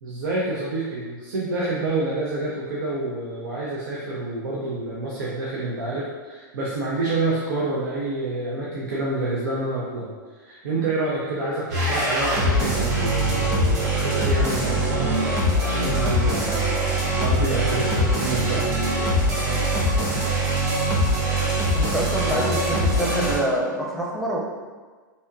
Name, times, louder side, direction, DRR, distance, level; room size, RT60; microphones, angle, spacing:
voice 1, 0.0-15.2 15.6-18.6, right 2 dB, 80° right, -5 dB, 0.6 m, -28 dB
sound 1, 11.7-23.4, right 1 dB, 35° right, 1.3 m, -22 dB
voice 2, 21.7-24.4, right 1 dB, ahead, -3 dB, 0.6 m, -26 dB
3.4 x 2.6 x 2.6 m, 1.4 s
hypercardioid pair, 115°, 11 cm